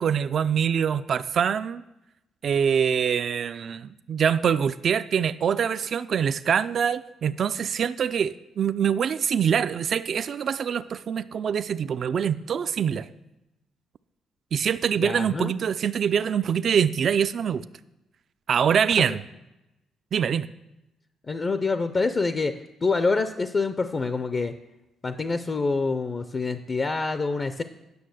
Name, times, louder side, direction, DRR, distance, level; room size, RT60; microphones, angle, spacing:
voice 1, 0.0-1.8 2.4-13.1 14.5-17.6 18.5-19.2 20.1-20.5, right 7 dB, 55° right, 13 dB, 0.3 m, -24 dB
voice 2, 15.0-15.5 19.0-19.1 21.3-24.5 25.0-27.6, left 3 dB, 35° left, 10 dB, 0.5 m, -26 dB
9.5 x 6.4 x 6.3 m, 0.93 s
cardioid pair, 90°, 0 cm